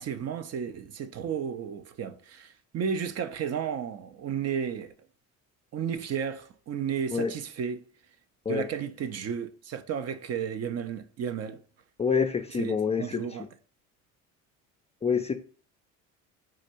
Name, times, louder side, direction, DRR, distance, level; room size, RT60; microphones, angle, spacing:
voice 1, 0.0-4.9 5.7-7.8 8.5-11.6 12.5-13.4, right 7 dB, 40° right, 0.6 m, -33 dB
voice 2, 12.0-13.2 15.0-15.3, left 6 dB, 15° left, 0.4 m, -26 dB
3.8 x 2.5 x 4.3 m
hypercardioid pair, 70°, 41 cm